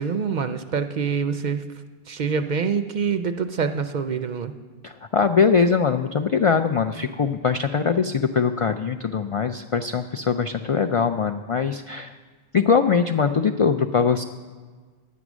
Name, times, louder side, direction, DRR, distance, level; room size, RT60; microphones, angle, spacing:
voice 1, 0.0-1.6 2.1-4.5, right 6 dB, 55° right, 9 dB, 0.6 m, -25 dB
voice 2, 4.8-12.2 12.5-14.2, left 6 dB, 55° left, 6 dB, 0.3 m, -22 dB
11.0 x 9.3 x 6.1 m, 1.5 s
omnidirectional pair, 1.1 m